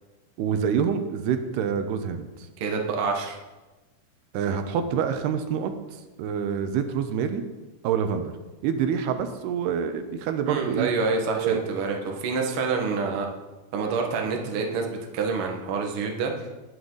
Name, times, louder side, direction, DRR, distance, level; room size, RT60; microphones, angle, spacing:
voice 1, 0.4-2.5 4.3-5.7 6.2-7.4 7.8-8.3 8.6-10.9 11.4-11.6, right 7 dB, 85° right, 8 dB, 2.9 m, -26 dB
voice 2, 2.6-3.4 10.5-13.3 13.7-16.3, right 4 dB, 50° right, 1 dB, 1.7 m, -27 dB
19.5 x 7.9 x 4.0 m, 1.1 s
omnidirectional pair, 4.6 m